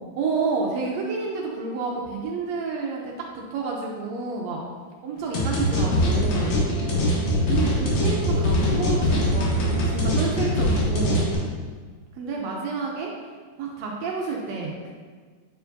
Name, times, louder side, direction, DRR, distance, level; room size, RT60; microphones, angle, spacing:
voice 1, 0.2-4.6 5.0-6.5 7.5-11.3 12.2-13.1 13.6-14.9, right 4 dB, 75° right, -1 dB, 1.7 m, -29 dB
sound 1, 5.3-11.3, left 1 dB, 70° left, 2.3 m, -22 dB
8.7 x 4.7 x 2.6 m, 1.5 s
omnidirectional pair, 3.5 m